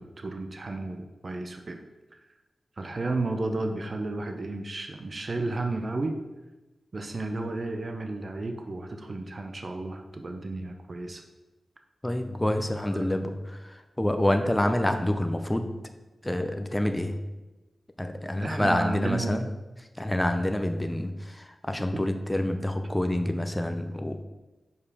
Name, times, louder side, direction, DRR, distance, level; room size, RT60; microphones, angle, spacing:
voice 1, 0.0-1.8 2.8-6.2 6.9-11.2 12.8-13.2 18.4-19.4 21.9-22.0, right 2 dB, 45° right, 5 dB, 0.6 m, -32 dB
voice 2, 12.0-15.7 16.2-17.2 18.0-19.4 20.0-24.2, left 1 dB, 10° left, 6 dB, 0.5 m, -27 dB
5.4 x 4.8 x 4.8 m, 1.1 s
cardioid pair, 60°, 0 cm